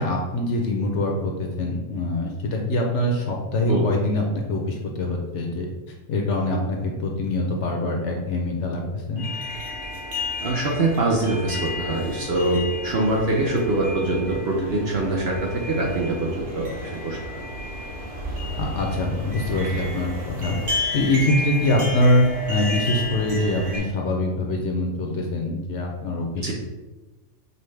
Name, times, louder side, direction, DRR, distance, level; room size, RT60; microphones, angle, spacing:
voice 1, 0.0-4.2 4.5-5.7 6.1-9.2 18.6-26.5, left 1 dB, 65° left, 1 dB, 0.8 m, -24 dB
sound 1, 9.2-23.8, left 1 dB, 45° right, 1.0 m, -32 dB
voice 2, 10.4-17.2 26.4-26.5, right 2 dB, 60° right, -2 dB, 0.7 m, -24 dB
5.3 x 2.1 x 3.2 m, 1.1 s
omnidirectional pair, 1.5 m